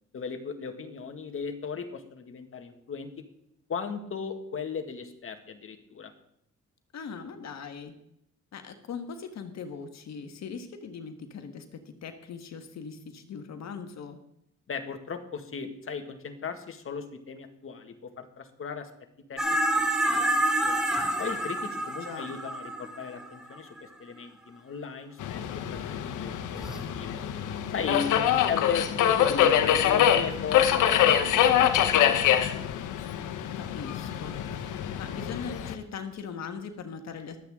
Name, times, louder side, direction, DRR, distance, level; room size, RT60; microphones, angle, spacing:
voice 1, 0.1-3.1 3.7-6.1 14.7-18.9 19.3-20.3 20.6-20.8 21.2-27.2 27.7-32.3, left 5 dB, 45° left, 6 dB, 1.9 m, -37 dB
voice 2, 6.9-7.9 8.5-14.2 22.0-22.3 28.5-28.6 33.6-37.4, left 6 dB, 60° left, 7 dB, 1.6 m, -40 dB
sound 1, 19.4-23.8 26.6-26.8, right 1 dB, ahead, 2.5 m, -28 dB
Subway metro underground, 25.2-35.7, left 10 dB, 80° left, 1.1 m, -25 dB
23.0 x 8.3 x 3.7 m, 0.77 s
cardioid pair, 90°, 30 cm